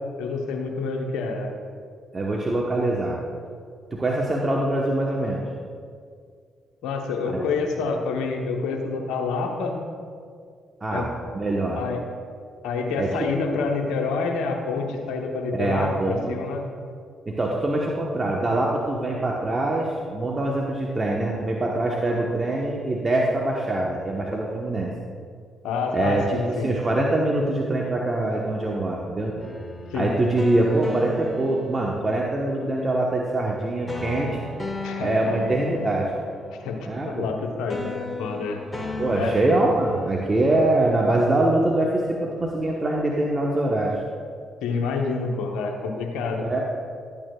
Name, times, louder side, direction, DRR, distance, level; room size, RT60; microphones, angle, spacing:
voice 1, 0.2-1.5 6.8-9.8 10.9-11.1 11.8-12.0 12.6-16.6 22.1-22.2 25.6-26.7 29.9-30.1 34.8-35.5 36.6-38.6 39.1-39.3 44.6-46.5, left 4 dB, 75° left, 2 dB, 0.9 m, -28 dB
voice 2, 2.1-3.2 3.9-5.4 7.3-7.5 10.8-11.8 13.0-13.6 15.5-16.4 17.3-24.9 25.9-26.2 26.5-29.3 29.9-34.4 35.0-36.1 36.8-37.3 39.0-44.0 46.4-46.6, right 2 dB, 30° right, -2 dB, 1.1 m, -24 dB
sound 1, 29.4-32.5 33.9-37.4 37.7-40.2, left 3 dB, 20° left, 1.5 m, -35 dB
12.5 x 8.8 x 2.4 m, 2.1 s
hypercardioid pair, 45°, 0 cm